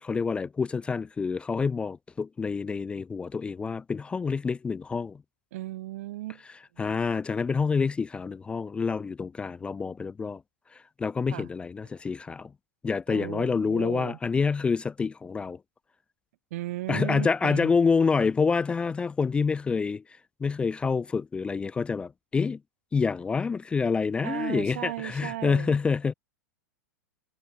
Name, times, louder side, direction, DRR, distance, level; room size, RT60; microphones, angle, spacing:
voice 1, 0.0-5.2 6.8-10.4 10.7-12.5 12.8-15.6 16.9-22.6 22.9-26.1, left 5 dB, 10° left, 0.3 m, -27 dB
voice 2, 5.5-6.4 6.7-6.8 11.3-11.5 13.1-14.2 16.5-17.7 24.2-25.8, right 16 dB, 50° right, 0.5 m, -36 dB
figure-of-eight pair, 100°, 10 cm